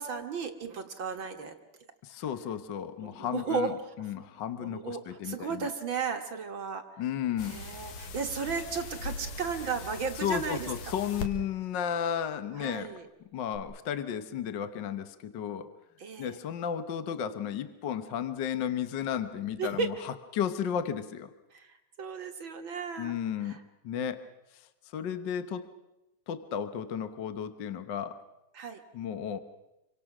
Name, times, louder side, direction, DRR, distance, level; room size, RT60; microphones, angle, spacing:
voice 1, 0.0-1.6 3.0-3.9 4.6-6.8 7.4-10.9 12.5-13.1 16.0-16.4 19.6-19.9 21.5-23.6 25.0-25.1 28.5-28.8, right 5 dB, 50° right, 5 dB, 1.8 m, -35 dB
voice 2, 2.0-5.7 7.0-7.6 10.2-12.9 13.3-15.7 16.2-21.3 23.0-23.6 23.8-24.2 24.5-24.6 24.9-25.7 26.3-28.2 28.9-29.4, left 8 dB, 60° left, 10 dB, 1.2 m, -33 dB
sound 1, 7.4-11.3 13.5-13.6, left 3 dB, 90° left, 3.2 m, -40 dB
28.0 x 24.5 x 6.0 m, 0.93 s
omnidirectional pair, 3.4 m